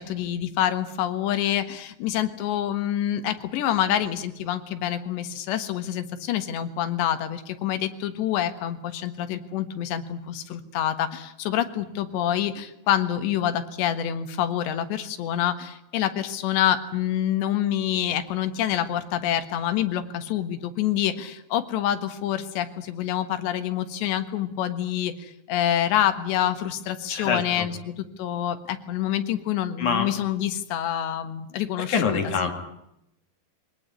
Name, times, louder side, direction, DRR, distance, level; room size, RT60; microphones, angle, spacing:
voice 1, 0.0-32.5, left 11 dB, 80° left, 10 dB, 3.7 m, -27 dB
voice 2, 27.1-27.7 29.8-30.1 31.8-32.5, left 5 dB, 50° left, 6 dB, 3.3 m, -25 dB
23.5 x 18.5 x 9.7 m, 0.84 s
omnidirectional pair, 4.9 m